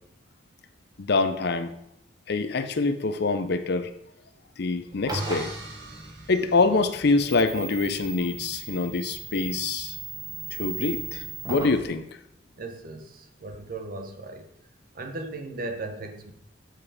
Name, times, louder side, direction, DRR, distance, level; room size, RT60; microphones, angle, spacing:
voice 1, 1.0-1.7 2.3-3.9 4.6-5.5 6.3-10.0 10.6-12.0, left 3 dB, 60° left, 10 dB, 0.6 m, -25 dB
sound 1, 4.9-11.8, right 3 dB, 20° right, 0.9 m, -37 dB
sound 2, 5.1-7.3, right 3 dB, 70° right, 1.5 m, -43 dB
voice 2, 12.6-14.5 14.9-16.3, right 2 dB, 50° right, 5 dB, 0.9 m, -37 dB
7.6 x 5.0 x 4.9 m, 0.75 s
head